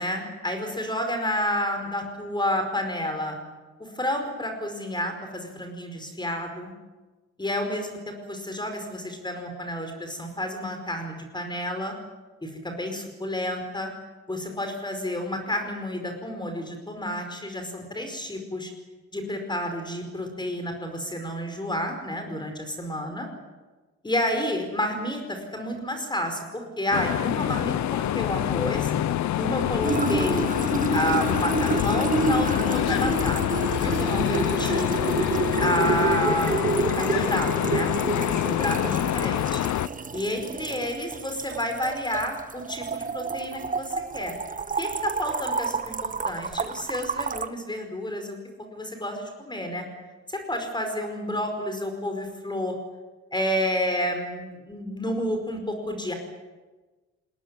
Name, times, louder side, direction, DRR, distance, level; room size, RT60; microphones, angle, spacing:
voice 1, 0.0-3.4 3.8-6.7 7.4-12.0 12.4-13.9 14.3-18.7 19.1-23.3 24.0-28.9 29.4-30.5 30.9-34.9 35.6-37.9 38.3-39.7 40.1-44.3 44.8-49.8 50.3-52.8 53.3-56.1, left 1 dB, 15° left, 5 dB, 4.9 m, -30 dB
sound 1, 26.9-39.9, left 12 dB, 65° left, 0.9 m, -26 dB
sound 2, 29.8-47.5, right 4 dB, 25° right, 1.2 m, -29 dB
Boom, 33.7-36.5, left 7 dB, 90° left, 2.5 m, -34 dB
21.0 x 18.0 x 9.8 m, 1.2 s
cardioid pair, 90°, 30 cm